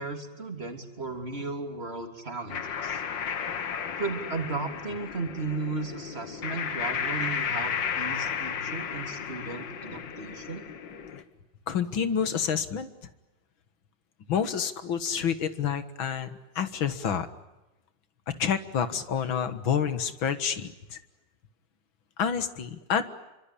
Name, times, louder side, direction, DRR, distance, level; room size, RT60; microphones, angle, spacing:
voice 1, 0.0-3.0 4.0-10.6, right 3 dB, 30° right, 4 dB, 3.5 m, -35 dB
sound 1, 2.5-11.2, left 7 dB, 70° left, 2.2 m, -33 dB
voice 2, 11.7-12.9 14.3-16.3 16.6-17.3 18.3-21.0 22.2-23.0, left 7 dB, 90° left, 11 dB, 2.4 m, -28 dB
28.0 x 25.0 x 8.5 m, 1.0 s
omnidirectional pair, 2.1 m